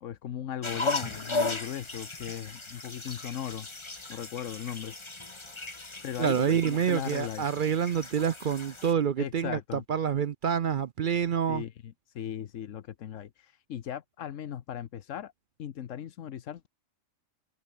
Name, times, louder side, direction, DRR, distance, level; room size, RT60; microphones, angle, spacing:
voice 1, 0.0-3.7 4.1-4.9 6.0-7.5 9.2-9.8 11.5-15.3 15.6-16.7, left 10 dB, 80° left, 1.2 m, -37 dB
sound 1, 0.6-8.9, left 2 dB, 25° left, 1.5 m, -36 dB
voice 2, 6.2-11.6, right 8 dB, 55° right, 0.6 m, -27 dB
omnidirectional pair, 1.3 m